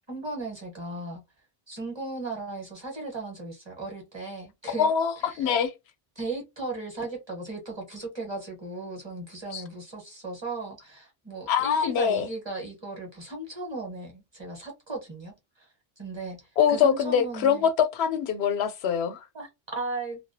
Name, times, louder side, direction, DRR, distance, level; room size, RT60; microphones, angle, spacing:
voice 1, 0.1-1.2 1.7-4.9 5.2-5.5 6.2-15.7 16.0-16.4 16.7-17.7 19.3-20.2, right 2 dB, 30° right, 1.0 m, -36 dB
voice 2, 4.6-5.7 9.5-9.6 11.5-12.3 16.6-19.2, left 7 dB, 90° left, 0.8 m, -24 dB
2.3 x 2.1 x 2.6 m
omnidirectional pair, 1.1 m